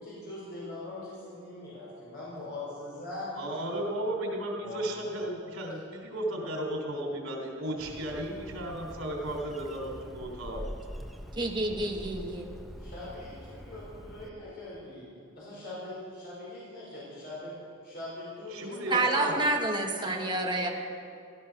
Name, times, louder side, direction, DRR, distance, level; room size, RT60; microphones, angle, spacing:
voice 1, 0.0-3.8 4.6-5.5 6.3-6.5 12.8-17.5 17.8-19.0 20.0-20.7, left 2 dB, 50° left, -7 dB, 5.0 m, -42 dB
voice 2, 3.4-10.6 18.5-19.5, right 1 dB, 80° right, 1 dB, 3.4 m, -34 dB
Bird, 7.8-14.3, equal, ahead, 0.8 m, -44 dB
voice 3, 11.4-12.5 18.9-20.7, right 2 dB, 20° right, 2 dB, 1.4 m, -28 dB
16.5 x 13.5 x 6.0 m, 2.3 s
head